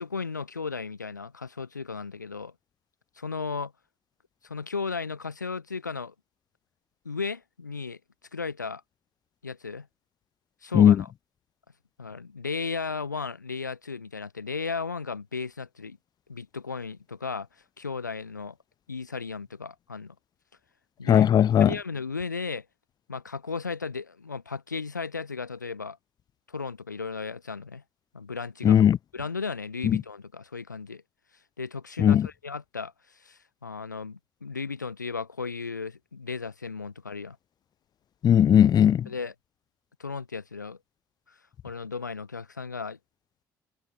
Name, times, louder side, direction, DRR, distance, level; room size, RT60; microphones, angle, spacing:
voice 1, 0.0-2.5 3.2-3.7 4.4-6.1 7.0-8.0 8.3-8.8 9.4-9.9 10.6-11.1 12.0-16.0 16.3-17.5 17.8-18.6 18.9-20.1 21.0-21.3 21.6-22.7 23.1-26.0 26.5-27.8 28.1-28.8 29.1-31.0 31.6-37.4 39.1-39.3 40.0-40.8 41.6-43.0, left 4 dB, 90° left, 1.0 m, -35 dB
voice 2, 21.1-21.7 28.6-29.0 29.8-30.0 32.0-32.3 38.2-39.1, left 9 dB, 45° left, 1.0 m, -18 dB
figure-of-eight pair, 50°, 10 cm